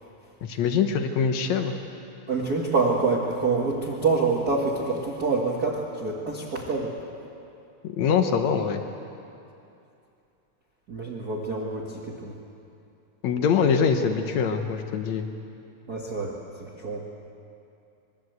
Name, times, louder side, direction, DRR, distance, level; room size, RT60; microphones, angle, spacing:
voice 1, 0.4-1.7 7.8-8.8 13.2-15.3, left 6 dB, 90° left, 6 dB, 1.5 m, -24 dB
voice 2, 2.3-6.9 10.9-11.9 12.2-12.3 15.9-16.3 16.6-17.0, right 3 dB, 55° right, -2 dB, 1.0 m, -26 dB
25.5 x 22.5 x 8.1 m, 2.7 s
omnidirectional pair, 4.9 m